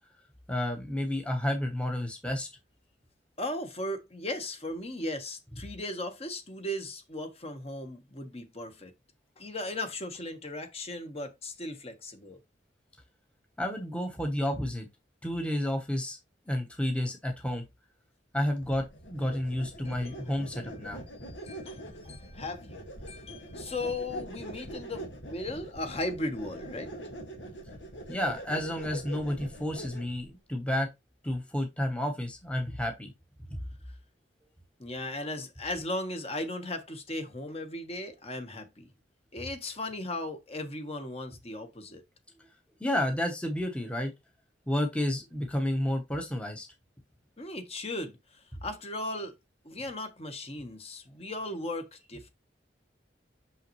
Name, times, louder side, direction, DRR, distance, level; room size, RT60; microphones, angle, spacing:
voice 1, 0.5-2.5 13.6-14.9 15.2-16.2 16.5-17.6 18.3-21.0 28.1-30.9 31.2-33.1 33.5-33.6 42.8-44.1 44.7-46.7, left 1 dB, 5° left, 1.0 m, -31 dB
voice 2, 3.4-8.9 9.4-12.4 19.8-20.2 21.2-26.9 34.8-38.9 39.3-42.0 47.4-49.3 49.6-52.3, left 1 dB, 35° left, 1.2 m, -37 dB
sound 1, 18.6-30.3, right 1 dB, 90° left, 1.9 m, -43 dB
6.3 x 5.6 x 3.1 m
head